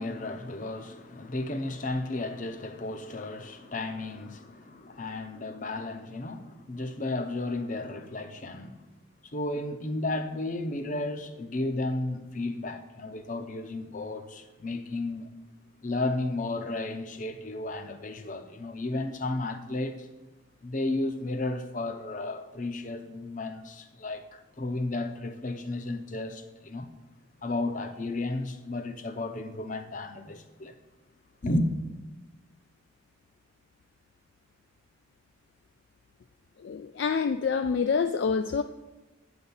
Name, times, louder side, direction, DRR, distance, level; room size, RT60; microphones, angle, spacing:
voice 1, 0.0-8.8 9.2-15.3 15.8-20.1 20.6-26.9 27.4-30.7 31.4-31.7, left 2 dB, 40° left, 0.7 m, -33 dB
voice 2, 36.6-38.6, left 5 dB, 55° left, 0.3 m, -27 dB
9.4 x 4.1 x 7.0 m
head